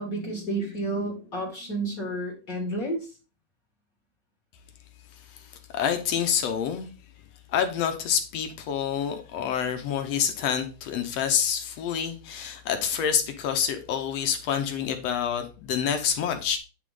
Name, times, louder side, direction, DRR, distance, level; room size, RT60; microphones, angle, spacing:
voice 1, 0.0-3.1, right 2 dB, 35° left, 1.7 m, -31 dB
voice 2, 5.3-6.9 7.5-16.6, left 8 dB, 70° left, 1.6 m, -27 dB
9.3 x 3.7 x 4.8 m
omnidirectional pair, 3.7 m